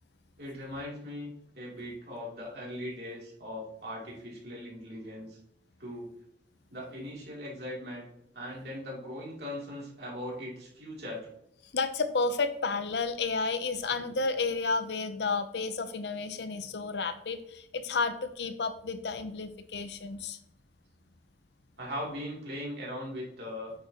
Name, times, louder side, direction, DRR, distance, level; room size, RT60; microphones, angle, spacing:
voice 1, 0.4-5.4 5.8-6.1 6.7-8.1 8.3-11.3 21.8-23.7, left 1 dB, 60° right, -4 dB, 3.0 m, -39 dB
voice 2, 11.7-20.4, left 4 dB, 70° left, 11 dB, 0.7 m, -31 dB
8.6 x 7.2 x 3.0 m, 0.74 s
head